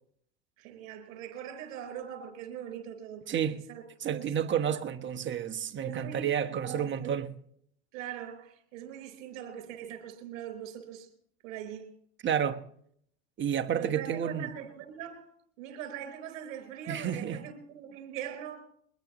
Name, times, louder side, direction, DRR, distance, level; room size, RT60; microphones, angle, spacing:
voice 1, 0.6-3.4 3.7-4.3 4.6-4.8 5.8-7.1 7.9-11.1 11.4-11.9 13.7-15.3 15.6-18.7, right 9 dB, 65° right, 4.2 m, -42 dB
voice 2, 3.3-3.6 4.0-7.3 12.2-12.7 13.4-14.5 16.9-17.4, right 8 dB, 30° right, 1.2 m, -30 dB
22.0 x 21.0 x 3.1 m
hypercardioid pair, 105°, 39 cm